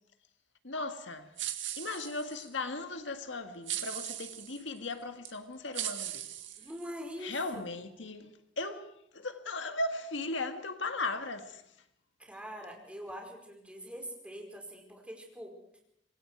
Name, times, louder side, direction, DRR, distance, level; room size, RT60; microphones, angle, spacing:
voice 1, 0.6-1.3 1.8-6.3 7.2-11.6, left 2 dB, 70° left, 1.8 m, -37 dB
sound 1, 1.4-2.5 3.7-4.6 5.2-5.4 5.7-7.1, right 12 dB, 70° right, 2.0 m, -38 dB
voice 2, 6.6-7.6 12.2-15.6, equal, 5° right, 5.0 m, -44 dB
27.0 x 21.5 x 4.7 m
head